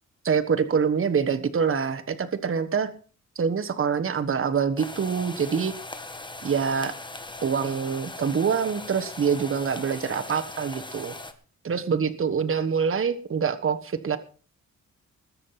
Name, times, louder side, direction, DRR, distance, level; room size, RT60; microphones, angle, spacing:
voice 1, 0.2-2.9 3.3-5.7 6.4-6.9 7.4-11.1 11.6-14.2, right 6 dB, 40° right, 7 dB, 1.3 m, -25 dB
sound 1, 4.8-11.3, left 2 dB, 15° left, 1.7 m, -39 dB
20.5 x 7.4 x 5.8 m, 0.40 s
wide cardioid pair, 120°, 31 cm